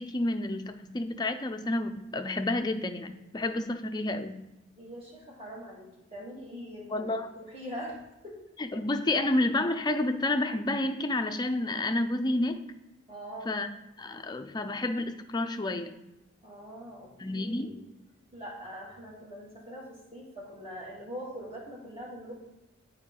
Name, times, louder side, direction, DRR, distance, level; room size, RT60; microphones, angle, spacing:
voice 1, 0.0-4.4 6.9-7.3 8.6-12.6 13.5-13.7 14.0-16.0 17.2-17.7, left 2 dB, 20° left, 7 dB, 0.4 m, -30 dB
voice 2, 4.8-8.4 13.1-13.5 16.4-17.8 18.3-22.3, equal, 30° right, -5 dB, 2.1 m, -43 dB
8.1 x 4.7 x 3.8 m, 0.99 s
head